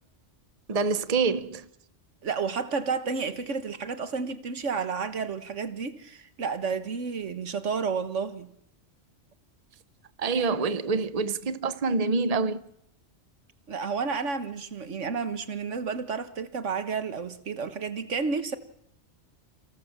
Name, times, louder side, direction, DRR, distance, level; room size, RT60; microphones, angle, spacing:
voice 1, 0.7-1.7 10.2-12.6, right 4 dB, 35° right, 1.0 m, -26 dB
voice 2, 2.2-8.5 13.7-18.6, right 5 dB, 85° right, 1.7 m, -31 dB
30.0 x 16.5 x 7.4 m
omnidirectional pair, 1.2 m